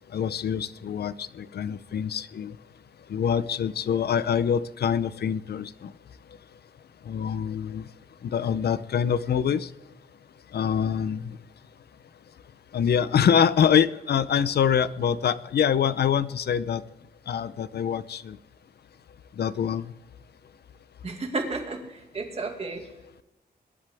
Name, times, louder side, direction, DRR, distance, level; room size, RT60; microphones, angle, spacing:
voice 1, 0.1-2.5 3.1-5.9 7.1-7.8 8.2-9.7 10.5-11.2 12.7-16.8 17.3-18.4 19.4-19.8, left 8 dB, 85° left, 15 dB, 0.6 m, -25 dB
voice 2, 21.0-22.9, right 3 dB, 40° right, 3 dB, 2.3 m, -32 dB
22.0 x 11.0 x 3.5 m, 0.95 s
wide cardioid pair, 175°, 16 cm